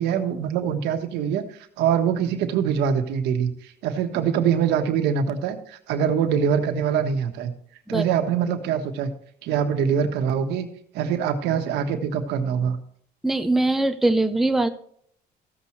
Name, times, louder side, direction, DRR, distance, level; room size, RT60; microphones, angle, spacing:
voice 1, 0.0-1.4 1.8-7.5 7.9-9.1 9.4-10.7 10.9-12.8, right 7 dB, 85° right, 6 dB, 1.4 m, -24 dB
voice 2, 13.2-14.7, right 2 dB, ahead, 7 dB, 0.7 m, -21 dB
14.5 x 7.4 x 3.2 m, 0.65 s
cardioid pair, 110°, 17 cm